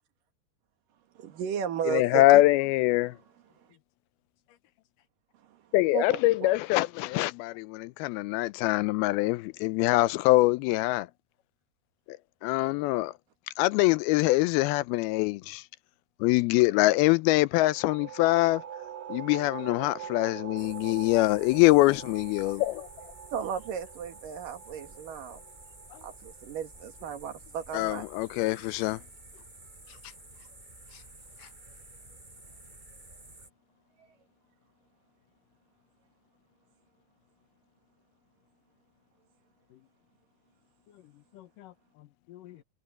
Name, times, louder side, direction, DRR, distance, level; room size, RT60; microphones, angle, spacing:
voice 1, 1.2-2.4 5.4-5.6 5.9-6.5 23.3-25.4 26.0-28.1 34.0-34.1, right 8 dB, 65° right, 3.5 m, -35 dB
voice 2, 1.9-3.1 5.7-11.1 12.4-13.1 13.6-15.6 16.2-18.6 19.1-22.9 27.7-29.0, left 19 dB, 85° left, 2.5 m, -24 dB
sound 1, 17.5-26.9, right 8 dB, 85° right, 3.8 m, -44 dB
sound 2, 20.6-33.5, right 2 dB, 10° right, 4.9 m, -51 dB
voice 3, 40.9-42.6, left 14 dB, 70° left, 2.5 m, -52 dB
omnidirectional pair, 4.3 m